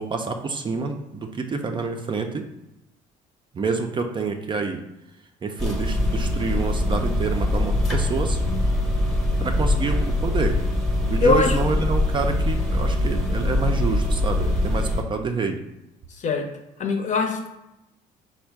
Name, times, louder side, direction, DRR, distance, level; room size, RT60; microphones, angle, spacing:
voice 1, 0.0-2.4 3.5-4.8 5.4-8.4 9.4-10.5 11.1-15.6, right 4 dB, 30° right, 5 dB, 0.4 m, -27 dB
sound 1, 5.6-15.0, left 1 dB, ahead, 0.8 m, -23 dB
voice 2, 11.2-11.6 16.1-16.5 16.8-17.5, left 4 dB, 45° left, 4 dB, 0.7 m, -22 dB
4.3 x 2.1 x 4.6 m, 0.90 s
cardioid pair, 110°, 17 cm